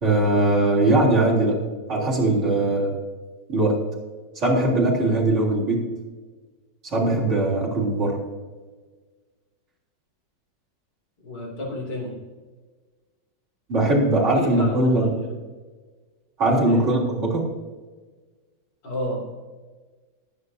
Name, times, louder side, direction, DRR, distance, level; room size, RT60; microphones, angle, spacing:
voice 1, 0.0-1.6 1.9-2.9 3.5-3.8 4.4-5.8 6.8-8.2 13.7-15.1 16.4-17.5, right 2 dB, 40° right, -5 dB, 3.9 m, -20 dB
voice 2, 11.2-12.2 14.3-15.4 16.6-16.9 18.8-19.2, left 1 dB, 65° left, -2 dB, 3.8 m, -31 dB
19.5 x 9.5 x 2.8 m, 1.4 s
omnidirectional pair, 2.0 m